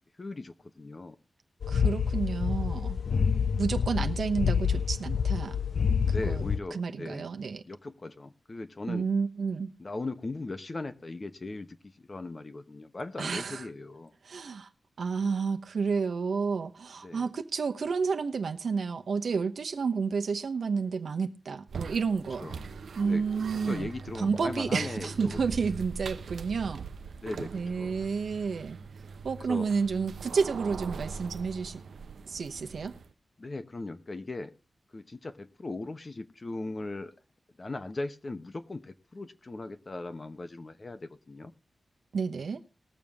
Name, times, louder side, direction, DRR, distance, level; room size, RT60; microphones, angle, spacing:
voice 1, 0.2-1.2 3.1-3.4 6.0-7.3 7.7-9.1 9.8-14.1 17.0-17.3 22.4-22.6 23.0-25.4 27.1-28.0 29.4-29.7 33.4-34.5 34.9-37.1 37.6-41.5, left 2 dB, 30° left, 0.9 m, -39 dB
sound 1, 1.6-6.6, left 6 dB, 65° left, 0.5 m, -27 dB
voice 2, 1.7-3.0 3.6-5.6 6.2-6.4 6.7-7.6 8.9-9.7 13.2-13.7 14.2-14.7 15.0-22.5 23.0-26.9 27.5-28.8 29.2-31.8 32.3-32.9 42.1-42.6, right 5 dB, 70° right, 1.0 m, -30 dB
sound 2, 21.7-33.1, right 5 dB, 90° right, 0.7 m, -42 dB
20.5 x 7.1 x 3.6 m
wide cardioid pair, 140°, 0 cm